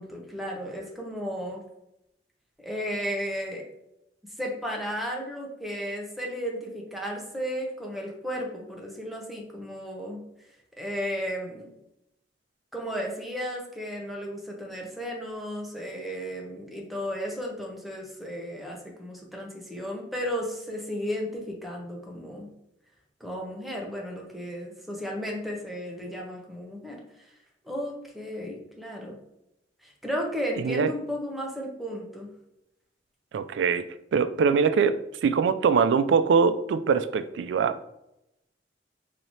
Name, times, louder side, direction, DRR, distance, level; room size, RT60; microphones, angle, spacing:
voice 1, 0.0-1.6 2.6-3.6 4.4-10.2 10.8-11.7 12.7-22.5 23.2-27.3 27.6-29.2 29.8-32.3, equal, ahead, -1 dB, 0.7 m, -34 dB
voice 2, 33.3-33.8 34.1-37.8, right 6 dB, 80° right, 12 dB, 0.3 m, -23 dB
3.1 x 2.8 x 4.2 m, 0.85 s
head